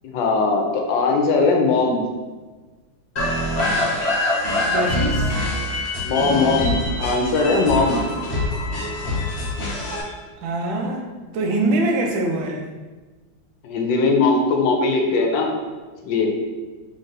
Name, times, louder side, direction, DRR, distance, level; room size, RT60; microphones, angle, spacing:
voice 1, 0.1-2.0 6.0-8.0 13.6-15.5 16.0-16.3, left 3 dB, 80° left, 2 dB, 1.3 m, -19 dB
sound 1, 3.2-10.0, left 1 dB, 45° left, 1.0 m, -24 dB
voice 2, 4.7-5.4 10.4-11.1 11.3-12.7, right 2 dB, 85° right, 1 dB, 1.4 m, -23 dB
3.9 x 3.6 x 2.6 m, 1.3 s
omnidirectional pair, 2.1 m